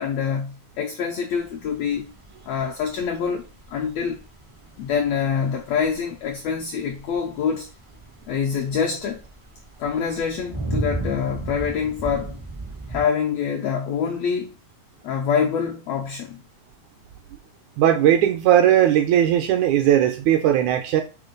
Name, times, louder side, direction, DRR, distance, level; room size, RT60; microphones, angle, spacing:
voice 1, 0.0-2.1 2.5-4.2 4.8-7.7 8.3-9.2 9.8-12.4 12.9-14.5 15.0-16.4, left 6 dB, 80° left, 1.5 m, -25 dB
sound 1, 1.4-13.0, right 2 dB, 35° right, 0.5 m, -35 dB
voice 2, 17.8-21.0, right 11 dB, 80° right, 1.8 m, -18 dB
4.9 x 3.8 x 5.1 m
omnidirectional pair, 3.9 m